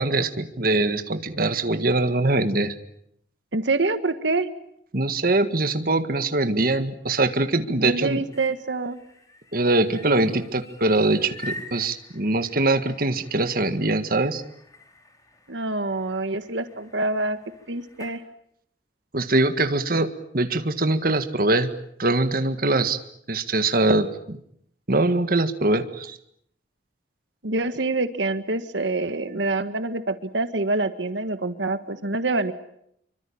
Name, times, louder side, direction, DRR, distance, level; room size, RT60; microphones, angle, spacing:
voice 1, 0.0-2.7 4.9-8.2 9.5-14.4 19.1-20.1 20.3-21.7 22.0-23.0 23.3-24.4 24.9-26.2, right 2 dB, 55° right, 8 dB, 1.8 m, -22 dB
voice 2, 3.5-4.5 7.8-9.0 15.5-17.4 17.7-18.2 27.4-32.5, right 2 dB, 85° right, 10 dB, 1.6 m, -26 dB
sound 1, 8.1-18.2, left 1 dB, 20° left, 4.5 m, -45 dB
26.5 x 24.5 x 8.7 m, 0.74 s
head